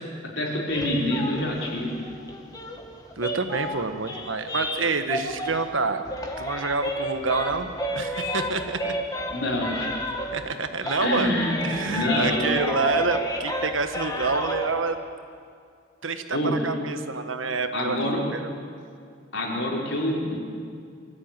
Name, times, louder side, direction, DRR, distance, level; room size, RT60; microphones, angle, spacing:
voice 1, 0.4-1.9 9.3-9.9 11.0-11.6 11.8-12.5 16.3-16.6 17.7-18.2 19.3-20.4, left 1 dB, 80° left, -3 dB, 4.8 m, -26 dB
sound 1, 0.7-5.8 6.1-10.6 10.8-14.7, equal, 20° left, 1.7 m, -31 dB
voice 2, 3.2-6.0 6.4-8.9 10.3-11.4 11.6-15.0 16.0-18.0 18.3-18.4, right 4 dB, 90° right, 8 dB, 1.4 m, -27 dB
24.0 x 14.0 x 9.0 m, 2.3 s
head